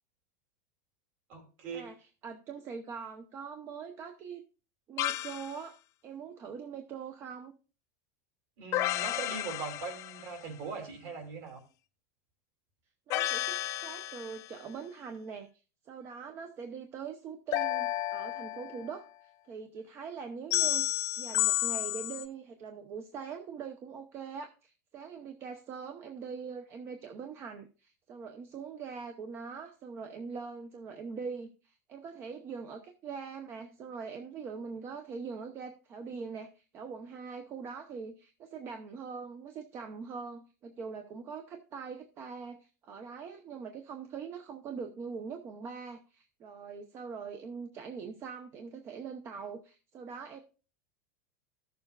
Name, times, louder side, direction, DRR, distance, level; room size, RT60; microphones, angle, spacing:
voice 1, 1.3-1.9 8.6-11.6, right 5 dB, 50° right, 3 dB, 2.7 m, -40 dB
voice 2, 2.2-4.4 4.9-5.8 6.0-7.5 13.1-15.5 15.8-20.8 21.2-50.4, right 5 dB, 30° right, 6 dB, 0.7 m, -42 dB
sound 1, 5.0-5.5 8.7-10.4 13.1-14.5 17.5-19.0 20.5-22.2, left 15 dB, 35° left, 0.5 m, -32 dB
15.0 x 6.9 x 2.3 m, 0.34 s
supercardioid pair, 160°, 9 cm